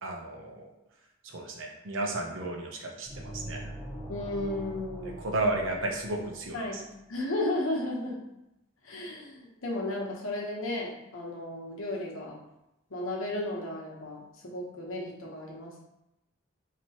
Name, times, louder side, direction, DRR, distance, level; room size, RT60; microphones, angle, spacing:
voice 1, 0.0-0.7 1.2-3.7 5.0-6.8, right 2 dB, 70° right, 2 dB, 0.7 m, -33 dB
sound 1, 3.1-6.9, equal, ahead, 0.9 m, -42 dB
voice 2, 4.1-5.2 6.5-6.8 7.1-8.2 8.8-12.4 12.9-15.8, left 1 dB, 85° left, -2 dB, 1.0 m, -34 dB
4.3 x 2.9 x 2.9 m, 0.90 s
head